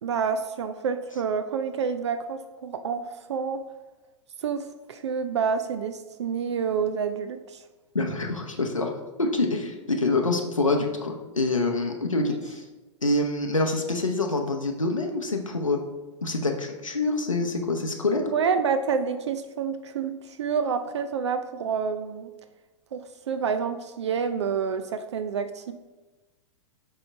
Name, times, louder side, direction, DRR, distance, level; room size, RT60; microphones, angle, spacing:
voice 1, 0.0-3.6 4.4-7.6 18.2-22.3 22.9-25.7, right 6 dB, 60° right, 9 dB, 0.4 m, -28 dB
voice 2, 7.9-8.9 9.2-12.7 13.0-15.8 16.2-18.2, left 2 dB, 85° left, 2 dB, 0.7 m, -26 dB
6.6 x 3.8 x 4.4 m, 1.2 s
figure-of-eight pair, 100°, 16 cm